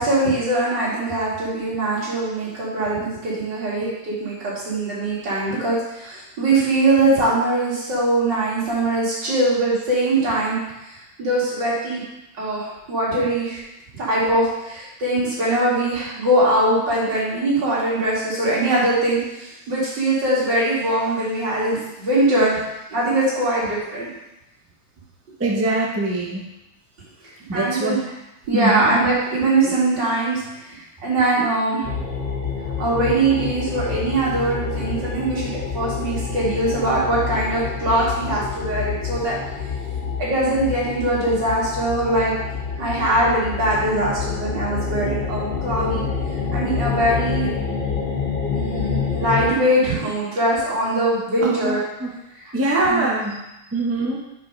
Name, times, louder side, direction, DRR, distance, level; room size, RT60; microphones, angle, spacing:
voice 1, 0.0-10.6 10.9-12.0 12.4-13.6 14.0-22.6 22.9-24.1 27.5-28.0 28.5-31.9 32.8-39.4 40.2-42.3 42.8-46.0 46.5-47.5 48.5-51.8 52.4-53.0, right 2 dB, 80° right, -7 dB, 2.9 m, -22 dB
voice 2, 25.4-26.5 27.5-28.1 28.5-28.9 51.4-52.1 52.5-53.4 53.7-54.2, right 2 dB, 15° right, -1 dB, 0.5 m, -23 dB
sound 1, 31.8-49.5, left 6 dB, 90° left, 2.4 m, -27 dB
5.7 x 4.8 x 5.2 m, 0.91 s
omnidirectional pair, 1.9 m